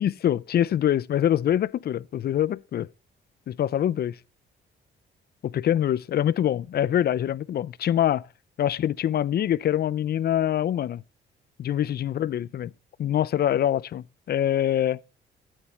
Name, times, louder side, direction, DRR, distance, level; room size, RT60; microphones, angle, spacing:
voice 1, 0.0-2.9 3.5-4.2 5.4-8.3 8.6-11.0 11.6-12.7 13.0-15.0, left 10 dB, 50° left, 0.5 m, -24 dB
12.5 x 9.3 x 4.2 m
cardioid pair, 90°, 20 cm